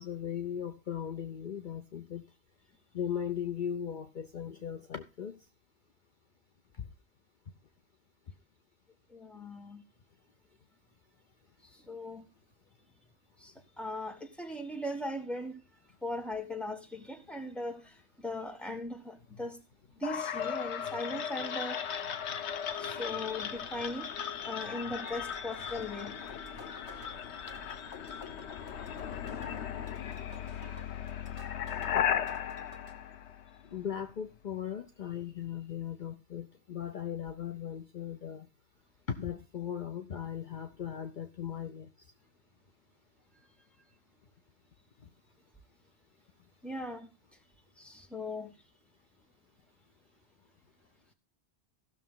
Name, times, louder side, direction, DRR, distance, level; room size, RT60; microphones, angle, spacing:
voice 1, 0.0-2.2 2.9-5.4 22.3-22.4 33.7-38.5 39.1-41.9, left 8 dB, 50° left, 0.8 m, -38 dB
voice 2, 9.1-9.8 11.9-12.2 13.8-15.5 16.0-17.8 18.2-19.6 20.0-21.8 22.8-24.1 24.4-26.1 46.6-47.1 47.8-48.5, left 1 dB, ahead, 1.4 m, -38 dB
sound 1, 20.0-33.9, left 8 dB, 80° left, 1.1 m, -36 dB
sound 2, 24.6-32.0 32.3-32.9, right 2 dB, 30° right, 1.6 m, -55 dB
15.5 x 6.6 x 3.7 m
omnidirectional pair, 1.1 m